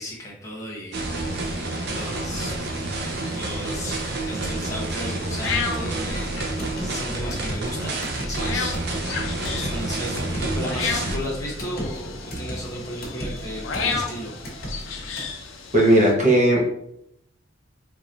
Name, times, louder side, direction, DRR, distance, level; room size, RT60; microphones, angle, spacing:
voice 1, 0.0-2.6 3.3-14.4, equal, 15° left, -4 dB, 1.1 m, -35 dB
sound 1, 0.9-11.2, right 2 dB, 60° right, 0.6 m, -29 dB
sound 2, 1.0-16.1, left 5 dB, 75° left, 0.6 m, -34 dB
sound 3, 6.1-15.3, equal, 55° left, 1.4 m, -36 dB
voice 2, 15.7-16.7, right 1 dB, 40° right, -3 dB, 1.0 m, -17 dB
4.7 x 2.9 x 2.6 m, 0.74 s
head